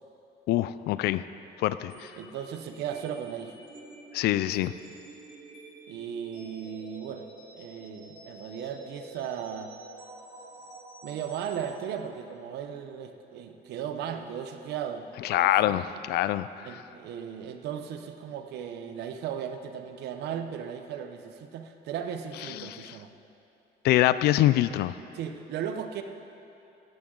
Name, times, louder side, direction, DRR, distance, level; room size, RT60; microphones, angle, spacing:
voice 1, 0.5-1.2 1.6-2.1 4.1-4.7 15.2-16.5 22.6-22.9 23.8-24.9, left 14 dB, 75° left, 15 dB, 0.4 m, -24 dB
sound 1, 1.9-11.8, right 2 dB, 30° right, 2.6 m, -48 dB
voice 2, 2.2-3.6 5.9-7.3 7.5-9.7 11.0-15.1 15.3-15.8 16.6-23.1 25.1-26.0, right 8 dB, 80° right, 7 dB, 0.9 m, -36 dB
15.5 x 10.5 x 3.9 m, 2.8 s
cardioid pair, 110°, 17 cm